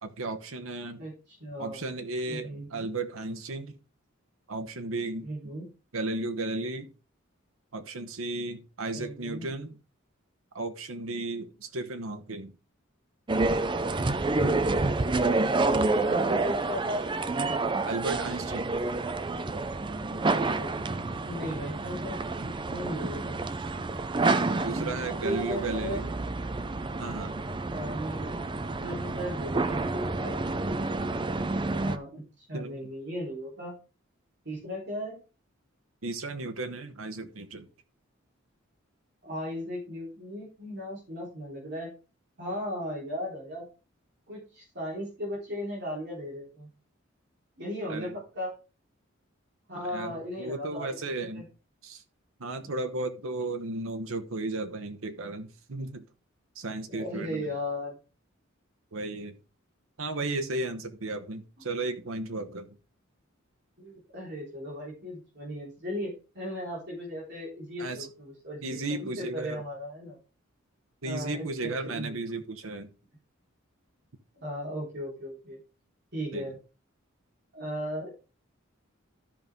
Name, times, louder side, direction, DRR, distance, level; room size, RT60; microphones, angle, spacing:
voice 1, 0.0-1.0 1.6-3.7 4.5-5.3 5.9-6.9 7.7-9.7 10.5-12.5 17.8-18.8 24.6-26.0 27.0-27.4 32.5-32.8 36.0-37.7 47.9-48.1 49.8-51.5 51.8-52.0 52.4-56.0 56.6-57.5 58.9-59.3 60.0-62.7 67.8-68.1 68.6-69.6 71.0-72.9 76.3-76.4, right 2 dB, 85° right, 1.0 m, -34 dB
voice 2, 1.0-1.9 2.3-2.9 5.2-5.7 8.9-9.5 14.3-17.0 20.3-23.4 24.4-24.7 25.1-26.1 27.7-30.4 31.8-33.7 34.4-35.2 39.2-41.9 42.4-43.7 44.3-46.7 47.6-48.5 49.7-51.5 56.9-58.0 63.8-70.2 71.0-72.2 74.3-75.6 76.1-76.6 77.5-78.1, equal, 55° right, 3.7 m, -37 dB
sound 1, 13.3-32.0, right 3 dB, 25° right, 0.5 m, -29 dB
13.5 x 5.3 x 3.6 m
head